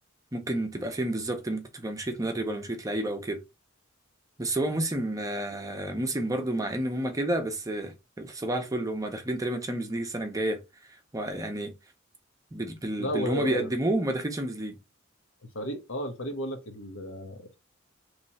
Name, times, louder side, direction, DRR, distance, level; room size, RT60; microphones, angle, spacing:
voice 1, 0.3-3.4 4.4-10.6 11.1-11.7 12.5-14.8, right 1 dB, 15° right, 0.7 m, -30 dB
voice 2, 13.0-13.7 15.5-17.5, equal, 70° left, 1.0 m, -33 dB
3.2 x 2.9 x 4.1 m
head